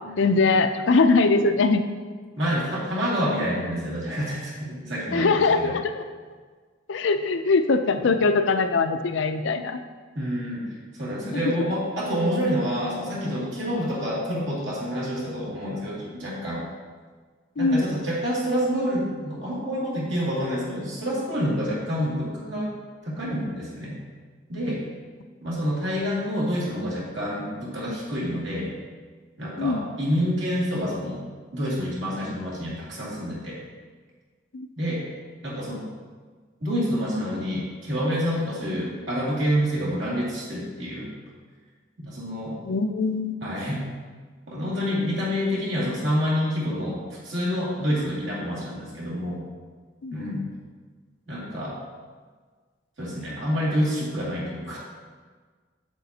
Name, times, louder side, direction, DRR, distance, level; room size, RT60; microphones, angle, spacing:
voice 1, 0.2-1.8 5.1-6.0 6.9-9.8 17.6-17.8 29.6-29.9 34.5-34.7 42.7-43.4 50.0-50.4, left 3 dB, 65° left, 8 dB, 0.5 m, -22 dB
voice 2, 2.4-5.8 8.0-8.1 10.1-16.6 17.6-22.8 23.0-24.0 24.5-24.9 25.4-28.7 29.4-31.2 31.5-33.6 34.8-35.0 35.4-35.9 36.6-41.1 42.0-42.6 43.4-43.8 44.5-49.4 50.1-50.4 51.3-51.8 53.0-54.8, equal, 60° right, -6 dB, 2.5 m, -28 dB
8.4 x 8.0 x 2.8 m, 1.5 s
head